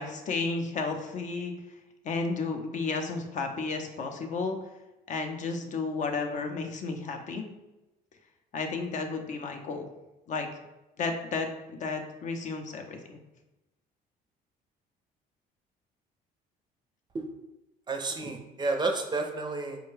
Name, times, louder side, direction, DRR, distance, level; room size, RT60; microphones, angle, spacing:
voice 1, 0.0-1.5 2.0-4.6 5.1-7.4 8.5-9.9 10.3-10.5 11.0-11.5 11.8-13.2, left 4 dB, 45° left, 4 dB, 0.5 m, -32 dB
voice 2, 17.9-19.8, right 3 dB, 25° right, 3 dB, 0.5 m, -31 dB
4.5 x 2.2 x 3.1 m, 0.99 s
cardioid pair, 110°, 17 cm